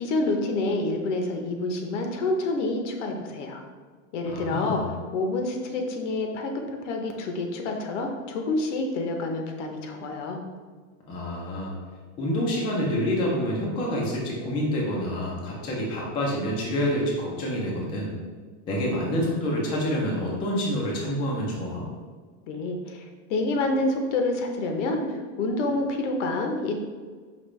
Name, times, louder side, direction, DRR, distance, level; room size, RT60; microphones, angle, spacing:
voice 1, 0.0-3.6 4.1-4.8 5.1-10.4 22.5-26.7, left 2 dB, 65° left, 3 dB, 0.8 m, -28 dB
voice 2, 4.3-4.9 11.1-11.7 12.2-18.1 18.7-21.8, equal, 15° left, -3 dB, 0.3 m, -27 dB
5.1 x 2.9 x 3.2 m, 1.5 s
supercardioid pair, 160°, 38 cm